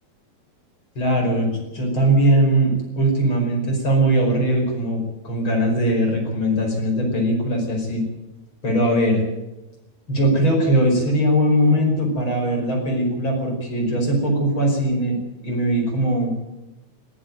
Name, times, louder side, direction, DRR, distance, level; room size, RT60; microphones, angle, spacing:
voice 1, 1.0-8.0 8.6-9.2 10.1-15.2 15.4-16.3, right 1 dB, 30° left, 1 dB, 5.8 m, -20 dB
19.5 x 15.0 x 9.1 m, 0.98 s
omnidirectional pair, 4.9 m